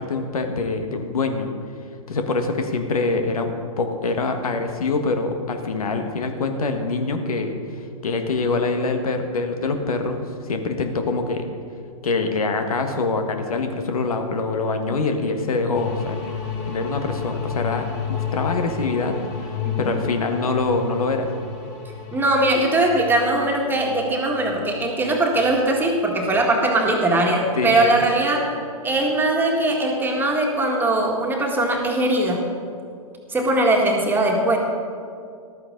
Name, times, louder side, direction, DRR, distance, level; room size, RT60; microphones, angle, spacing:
voice 1, 0.0-1.5 2.1-11.4 12.0-16.2 16.7-21.3 27.6-28.0, left 3 dB, 80° left, 6 dB, 1.5 m, -25 dB
sound 1, 15.7-28.2, left 7 dB, 40° left, 3.0 m, -33 dB
voice 2, 19.6-20.0 22.1-28.5 28.8-32.5 33.3-34.6, right 2 dB, 10° right, 0 dB, 1.8 m, -20 dB
14.5 x 12.5 x 3.8 m, 2.3 s
hypercardioid pair, 125°, 18 cm